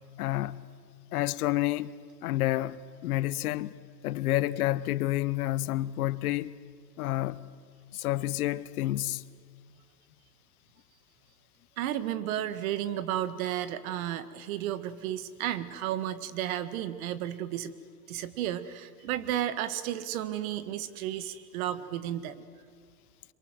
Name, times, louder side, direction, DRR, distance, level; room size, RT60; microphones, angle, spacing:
voice 1, 0.2-0.6 1.1-1.9 2.2-3.8 4.0-6.5 7.0-7.4 7.9-9.2, left 16 dB, 60° left, 1.1 m, -29 dB
voice 2, 11.8-17.7 18.1-22.4, right 11 dB, 55° right, 1.9 m, -33 dB
26.5 x 23.5 x 7.8 m
hypercardioid pair, 125°, 50 cm